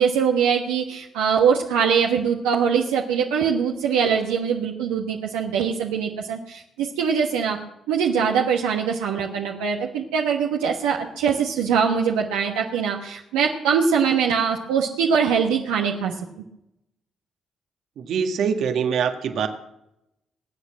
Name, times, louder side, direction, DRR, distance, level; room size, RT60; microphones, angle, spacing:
voice 1, 0.0-7.6 7.9-16.1, right 7 dB, 85° right, 0 dB, 1.2 m, -22 dB
voice 2, 18.0-19.5, right 7 dB, 70° right, 7 dB, 1.6 m, -24 dB
21.0 x 8.2 x 7.5 m, 0.83 s
hypercardioid pair, 50°, 0 cm